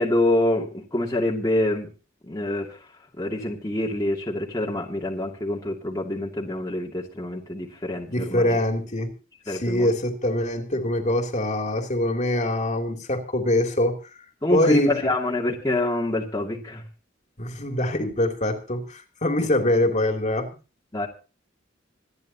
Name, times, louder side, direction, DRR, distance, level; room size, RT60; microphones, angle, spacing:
voice 1, 0.0-1.9 2.2-2.8 3.2-8.6 9.5-9.9 14.4-16.8 20.9-21.1, left 1 dB, 20° left, -2 dB, 2.7 m, -26 dB
voice 2, 8.1-9.2 9.5-14.0 14.5-14.9 17.4-20.5, left 1 dB, 40° left, 4 dB, 3.1 m, -24 dB
27.0 x 11.0 x 2.9 m, 0.34 s
head